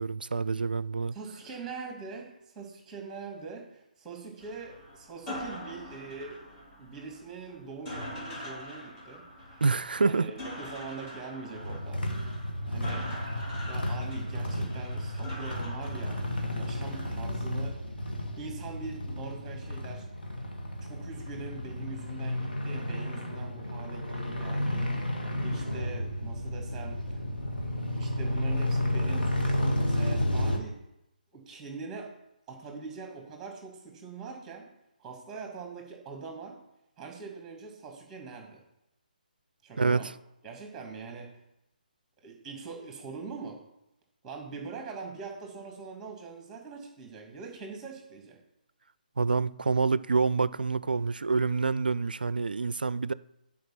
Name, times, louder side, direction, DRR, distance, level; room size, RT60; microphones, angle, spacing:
voice 1, 0.0-1.2 9.6-10.3 39.8-40.1 49.2-53.1, right 4 dB, 75° right, 0.4 m, -27 dB
voice 2, 1.1-6.4 6.8-9.6 10.0-12.0 12.6-13.3 13.7-17.8 18.4-20.1 20.8-25.0 25.4-27.2 27.9-30.8 31.3-32.1 32.5-34.7 35.0-36.6 37.0-38.6 39.6-40.1 40.4-41.4 42.2-43.6 44.2-48.4, right 4 dB, 10° right, 2.2 m, -43 dB
sound 1, 4.4-17.1, left 1 dB, 20° left, 3.0 m, -43 dB
sound 2, 11.5-30.6, left 1 dB, 85° left, 1.9 m, -32 dB
10.5 x 4.9 x 5.8 m
figure-of-eight pair, 140°, 5 cm